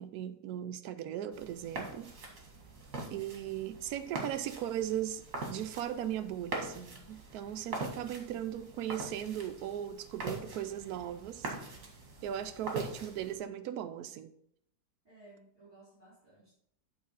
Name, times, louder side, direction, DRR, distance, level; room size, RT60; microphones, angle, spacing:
voice 1, 0.0-2.1 3.1-11.5 12.2-14.3, right 11 dB, 80° right, 1.1 m, -38 dB
sound 1, 1.3-13.4, right 2 dB, 60° right, 1.9 m, -43 dB
voice 2, 15.0-16.5, right 2 dB, 35° right, 3.6 m, -58 dB
8.8 x 3.9 x 5.4 m
omnidirectional pair, 1.6 m